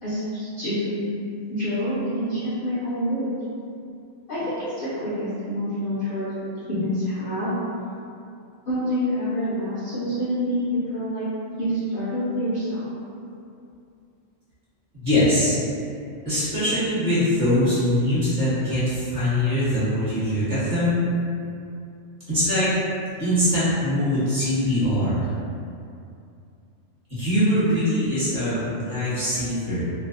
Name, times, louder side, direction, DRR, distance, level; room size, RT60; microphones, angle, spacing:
voice 1, 0.0-1.0 1.5-3.3 4.3-6.2 6.7-7.5 8.7-11.3 11.6-12.9, equal, 65° left, -10 dB, 0.5 m, -27 dB
voice 2, 14.9-15.5 16.2-21.0 22.3-22.7 23.2-25.2 27.1-29.8, left 1 dB, 40° right, -12 dB, 0.9 m, -22 dB
2.6 x 2.0 x 2.5 m, 2.5 s
omnidirectional pair, 1.4 m